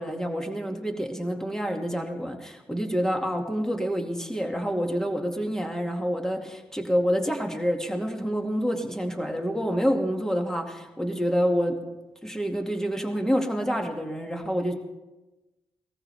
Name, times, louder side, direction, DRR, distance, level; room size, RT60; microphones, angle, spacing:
voice 1, 0.0-11.8 12.2-14.7, equal, 5° left, 3 dB, 2.2 m, -27 dB
19.0 x 14.5 x 3.4 m, 1.1 s
supercardioid pair, 45°, 10 cm